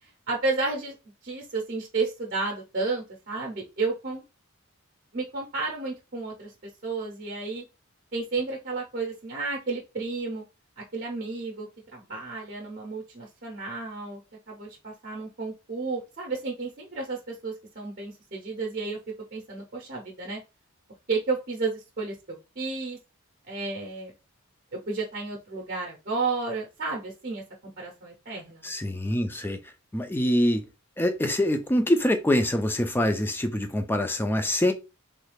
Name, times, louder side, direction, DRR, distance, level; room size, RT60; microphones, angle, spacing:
voice 1, 0.3-0.9 1.2-4.2 5.1-6.5 6.8-7.6 8.1-10.4 10.8-14.2 14.5-19.0 19.3-20.4 21.1-23.0 23.5-24.1 24.7-28.7, right 3 dB, 40° right, 0.7 m, -32 dB
voice 2, 28.6-29.6 29.9-30.6 31.0-34.7, left 1 dB, 10° left, 0.4 m, -24 dB
3.2 x 2.3 x 3.2 m
head